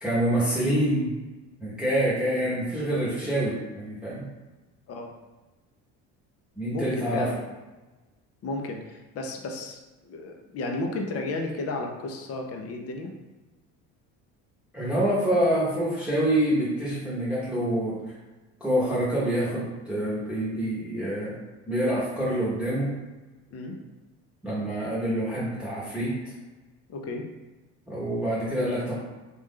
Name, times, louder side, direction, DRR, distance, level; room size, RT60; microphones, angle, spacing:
voice 1, 0.0-1.1 1.6-4.2 6.6-7.3 14.7-18.0 18.6-21.4 21.7-22.9 24.4-26.2 27.9-29.0, right 1 dB, 5° right, -8 dB, 1.0 m, -26 dB
voice 2, 6.7-7.4 8.4-9.8 10.0-13.1 23.5-23.8 26.9-27.3, left 2 dB, 45° left, 2 dB, 0.6 m, -33 dB
3.2 x 2.5 x 3.6 m, 1.2 s
supercardioid pair, 100°, 35 cm